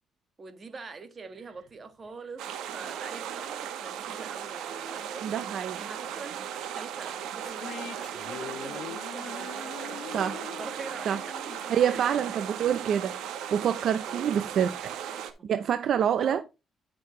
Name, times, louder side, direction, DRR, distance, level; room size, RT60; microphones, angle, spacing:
voice 1, 0.4-2.4 2.7-12.3 12.5-12.7 14.0-14.6 15.1-15.5 16.2-16.4, right 4 dB, 35° right, 1.6 m, -44 dB
sound 1, 2.4-15.3, right 9 dB, 85° right, 1.2 m, -37 dB
voice 2, 5.2-5.8 10.1-10.4 11.1-11.2 11.7-13.1 13.5-14.7 15.4-16.4, right 9 dB, 65° right, 0.6 m, -26 dB
sound 2, 7.4-12.8, left 8 dB, 65° left, 0.8 m, -44 dB
9.9 x 6.2 x 3.2 m
cardioid pair, 90°, 0 cm